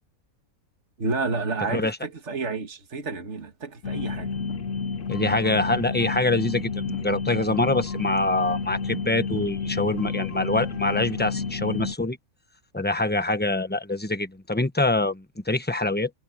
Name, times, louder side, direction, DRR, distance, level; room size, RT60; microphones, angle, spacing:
voice 1, 1.0-4.3, right 3 dB, 55° right, 2.4 m, -30 dB
sound 1, 3.8-11.9, left 5 dB, 65° left, 1.4 m, -30 dB
voice 2, 5.1-12.2 12.7-16.1, left 2 dB, 10° left, 1.1 m, -25 dB
omnidirectional pair, 1.4 m